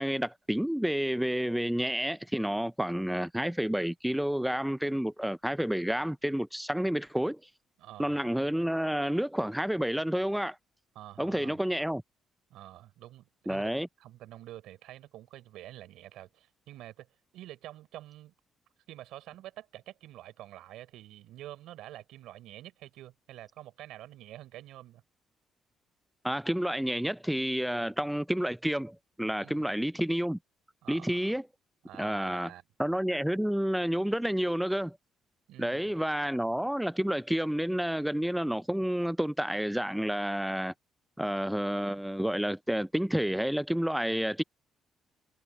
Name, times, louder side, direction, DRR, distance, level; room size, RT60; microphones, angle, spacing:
voice 1, 0.0-7.4 8.0-10.6 11.2-12.0 13.5-13.9 26.2-30.4 30.9-31.5 32.0-32.5 32.8-35.0 35.6-40.7 41.2-44.4, equal, 5° right, 0.4 m, -30 dB
voice 2, 7.8-8.2 10.9-11.6 12.5-13.7 14.0-17.1 17.3-18.3 18.9-25.0 29.4-29.7 30.8-31.4 31.8-32.6 35.5-35.9, right 14 dB, 90° right, 4.3 m, -48 dB
cardioid pair, 120°, 0 cm